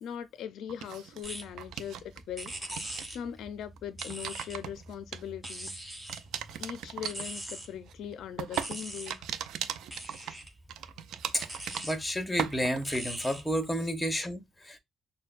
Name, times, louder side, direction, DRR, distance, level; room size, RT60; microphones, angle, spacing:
voice 1, 0.0-2.5 3.1-5.8 6.6-9.3, left 9 dB, 80° left, 0.4 m, -40 dB
sound 1, 0.7-2.2 2.5-3.1 3.8-5.7 6.1-12.1 12.4-13.0, right 9 dB, 80° right, 0.4 m, -38 dB
sound 2, 1.2-14.1, right 1 dB, 15° right, 2.8 m, -44 dB
voice 2, 11.8-14.8, equal, 10° left, 1.0 m, -31 dB
6.3 x 2.2 x 2.4 m
cardioid pair, 90°, 0 cm